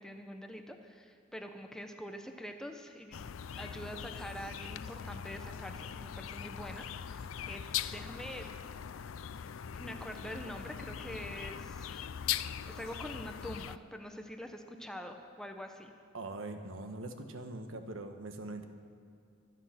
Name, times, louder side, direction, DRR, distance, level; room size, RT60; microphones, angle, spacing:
voice 1, 0.0-3.2 3.5-8.5 9.7-12.1 12.7-15.9, equal, 5° left, 4 dB, 1.0 m, -45 dB
sound 1, 3.1-13.8, left 9 dB, 85° left, 0.4 m, -41 dB
voice 2, 16.1-18.6, right 2 dB, 80° right, 6 dB, 1.3 m, -42 dB
24.0 x 9.0 x 5.9 m, 2.3 s
head